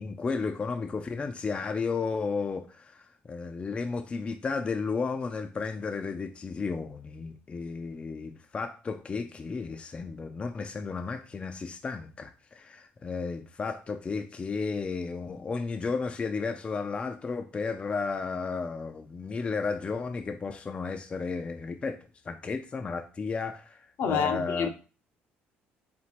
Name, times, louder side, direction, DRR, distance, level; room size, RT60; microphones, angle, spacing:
voice 1, 0.0-24.7, left 4 dB, 25° left, 0.4 m, -33 dB
voice 2, 24.0-24.7, left 7 dB, 65° left, 0.7 m, -27 dB
4.2 x 3.4 x 2.9 m
cardioid pair, 105°, 4 cm